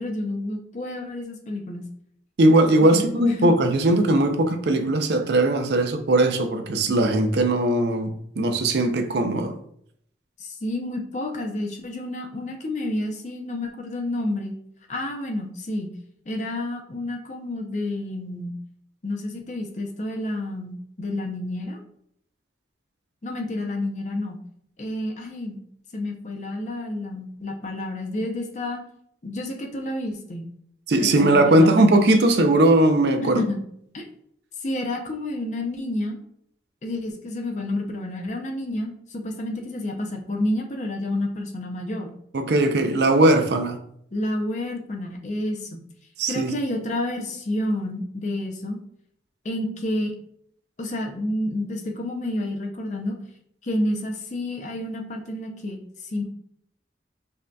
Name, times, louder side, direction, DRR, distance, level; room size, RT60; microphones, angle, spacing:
voice 1, 0.0-1.8 2.8-3.5 10.4-14.5 14.9-15.9 16.3-18.5 19.0-21.8 23.2-24.4 24.8-25.6 25.9-28.8 29.2-30.5 31.0-31.9 33.2-33.6 33.9-34.0 34.6-36.2 36.8-42.1 44.1-45.8 46.3-48.8 49.4-50.1 50.8-53.1 53.6-56.2, left 1 dB, 40° left, 0.5 m, -29 dB
voice 2, 2.4-9.6 30.9-33.4 42.3-43.8 46.2-46.5, right 1 dB, 65° right, 0.5 m, -19 dB
5.3 x 2.7 x 2.2 m
head